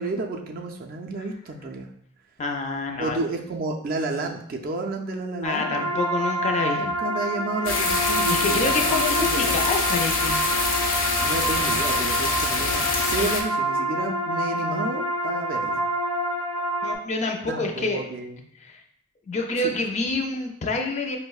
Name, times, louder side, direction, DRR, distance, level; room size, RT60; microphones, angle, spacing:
voice 1, 0.0-1.9 3.0-6.0 6.6-9.6 11.2-15.8 17.4-18.4 19.6-19.7, right 3 dB, 45° right, 2 dB, 0.4 m, -31 dB
voice 2, 2.4-3.2 5.4-6.9 8.3-10.4 16.8-18.1 18.6-18.8 19.3-21.2, left 3 dB, 35° left, 3 dB, 0.4 m, -27 dB
sound 1, 5.4-17.0, right 1 dB, 90° right, 0.6 m, -27 dB
sound 2, 7.7-13.4, left 3 dB, 75° left, 0.6 m, -25 dB
5.1 x 2.1 x 2.3 m, 0.71 s
head